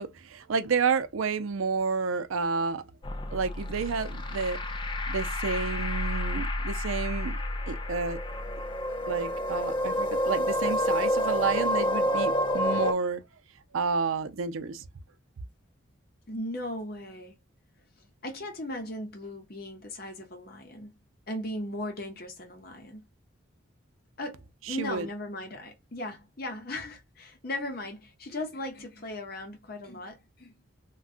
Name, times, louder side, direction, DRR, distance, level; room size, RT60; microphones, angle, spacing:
voice 1, 0.0-2.9 3.3-4.6 5.1-7.4 7.7-8.2 9.1-13.2 13.7-14.9 24.7-25.1, right 5 dB, 85° right, 0.5 m, -30 dB
sound 1, 3.0-12.9, left 1 dB, 25° left, 0.3 m, -29 dB
voice 2, 16.3-17.4 18.0-21.0 21.3-23.1 24.2-30.5, left 1 dB, 45° left, 0.7 m, -37 dB
3.5 x 2.3 x 2.4 m
head